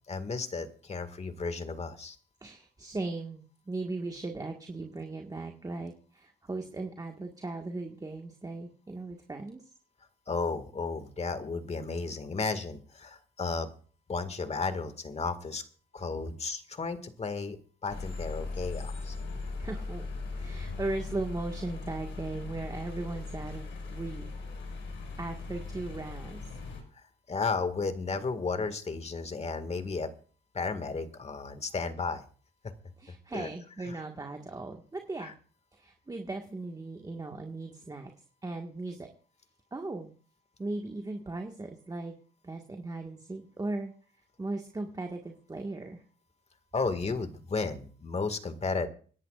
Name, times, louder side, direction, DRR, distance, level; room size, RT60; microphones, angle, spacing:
voice 1, 0.1-2.2 10.3-13.7 14.1-15.6 15.9-17.6 17.8-19.2 27.3-30.1 30.5-32.2 33.3-33.5 33.8-33.9 35.2-35.3 46.7-48.9, left 4 dB, 35° left, 10 dB, 2.0 m, -33 dB
voice 2, 2.4-9.6 19.6-20.1 20.4-24.3 25.2-26.4 33.0-35.3 35.7-38.1 38.4-39.1 39.7-40.1 40.6-42.1 42.4-43.9 44.4-46.0, right 2 dB, 20° right, 3 dB, 1.7 m, -37 dB
sound 1, 17.9-26.8, left 3 dB, 75° left, 5.6 m, -39 dB
27.0 x 11.0 x 2.5 m, 0.41 s
cardioid pair, 90°, 20 cm